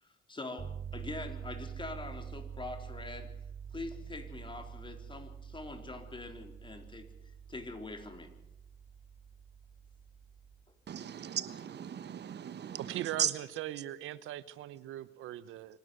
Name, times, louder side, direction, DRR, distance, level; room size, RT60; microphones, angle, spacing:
voice 1, 0.0-3.3 3.7-7.1 7.5-8.3, left 2 dB, 25° left, 4.0 m, -44 dB
sound 1, 0.6-10.7, right 8 dB, 40° right, 1.8 m, -46 dB
voice 2, 10.9-13.3, right 9 dB, 60° right, 1.2 m, -36 dB
voice 3, 12.9-15.8, right 13 dB, 85° right, 0.9 m, -40 dB
25.5 x 12.0 x 9.4 m
cardioid pair, 90°, 20 cm